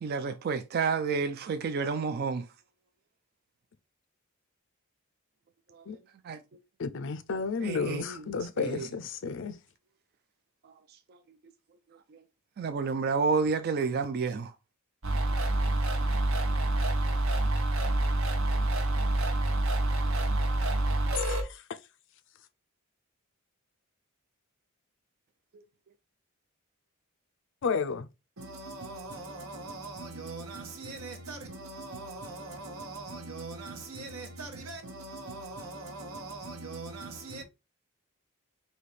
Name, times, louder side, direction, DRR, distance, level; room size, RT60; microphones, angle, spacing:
voice 1, 0.0-2.5 5.7-5.8 6.2-6.4 7.6-8.2 8.6-8.9 10.6-10.7 11.1-11.2 12.1-12.2 12.6-14.5 25.5-25.6, right 5 dB, 45° right, 0.3 m, -30 dB
voice 2, 6.8-9.5 21.2-21.6 27.6-28.1, left 5 dB, 60° left, 0.4 m, -32 dB
sound 1, 15.0-21.4, right 1 dB, 65° right, 0.9 m, -27 dB
voice 3, 28.4-37.4, right 3 dB, 80° right, 1.2 m, -41 dB
4.1 x 2.7 x 3.2 m
head